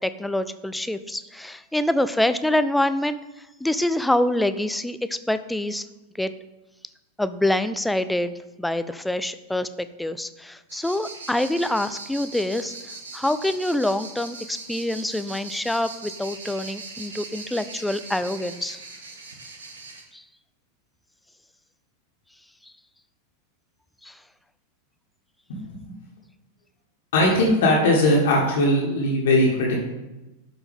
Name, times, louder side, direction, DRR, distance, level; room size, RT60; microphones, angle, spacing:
voice 1, 0.0-3.2 3.6-5.9 6.2-6.3 7.2-8.3 8.6-12.7 13.1-18.8 20.1-20.2 24.0-24.2, left 1 dB, 5° left, 12 dB, 0.4 m, -25 dB
sound 1, 10.7-20.0, right 3 dB, 70° right, 1.4 m, -40 dB
voice 2, 27.1-29.8, left 1 dB, 55° left, -3 dB, 1.6 m, -19 dB
12.0 x 4.5 x 3.6 m, 1.0 s
figure-of-eight pair, 90°, 0 cm